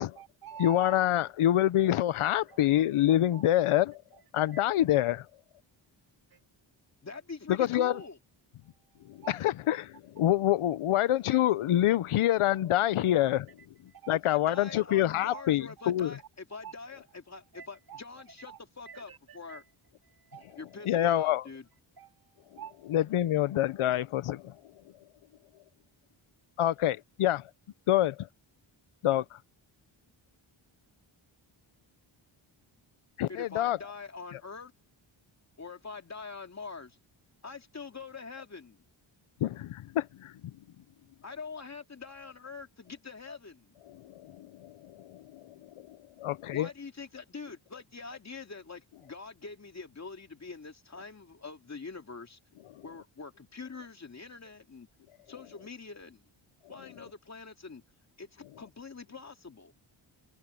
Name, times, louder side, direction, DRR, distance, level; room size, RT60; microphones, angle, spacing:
voice 1, 0.0-1.4 2.2-2.6 3.3-3.5 4.1-4.7 6.3-6.4 7.8-8.1 8.6-9.4 10.7-10.8 11.3-11.4 13.1-13.2 13.6-14.1 15.3-15.4 15.8-15.9 16.5-16.7 17.5-18.0 18.4-18.6 18.9-19.6 20.0-20.6 22.0-22.9, right 8 dB, 45° right, 2.9 m, -48 dB
voice 2, 0.6-4.0 4.3-5.2 7.5-8.0 9.1-13.5 14.1-16.1 20.9-21.4 22.9-24.5 26.6-27.4 27.9-28.3 29.0-29.2 33.2-33.8 39.4-40.3 44.2-45.4 45.9-46.7, left 13 dB, 90° left, 0.9 m, -26 dB
voice 3, 7.0-8.2 14.1-19.6 20.6-21.7 33.3-34.7 35.6-37.0 37.4-38.8 41.2-43.8 46.5-52.4 52.8-54.9 55.3-56.3 56.7-57.8 58.2-59.7, left 4 dB, 35° left, 2.5 m, -44 dB
cardioid pair, 105°, 49 cm